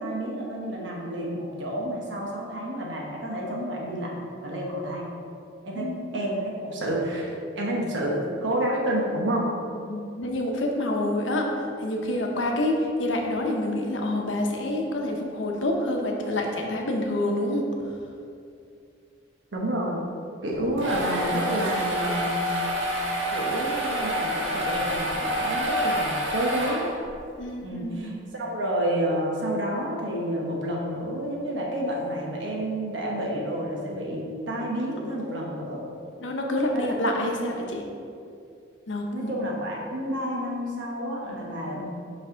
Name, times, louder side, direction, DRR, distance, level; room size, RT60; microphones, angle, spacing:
voice 1, 0.0-5.1 5.6-5.9 6.1-8.1 8.4-9.5 19.5-20.0 20.4-22.6 23.3-26.9 27.6-35.8 36.7-36.9 39.1-41.8, right 1 dB, 70° right, -2 dB, 1.1 m, -29 dB
voice 2, 9.9-11.5 11.8-17.6 27.4-28.2 36.2-37.8 38.9-39.3 41.3-41.6, left 1 dB, 80° left, 1 dB, 0.8 m, -27 dB
sound 1, 20.5-27.2, equal, 90° right, 1.3 m, -28 dB
5.5 x 5.4 x 3.9 m, 2.5 s
head